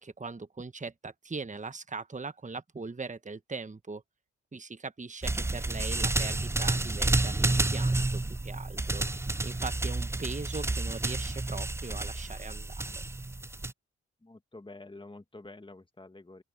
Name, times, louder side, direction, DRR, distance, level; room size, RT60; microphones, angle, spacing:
voice 1, 0.0-4.0 4.5-9.0 9.4-13.0, right 4 dB, 25° right, 1.3 m, -40 dB
percosis Mixdown, 5.2-13.7, right 2 dB, 10° right, 0.4 m, -30 dB
voice 2, 14.2-16.4, left 2 dB, 15° left, 1.9 m, -48 dB
open air
supercardioid pair, 45°, 29 cm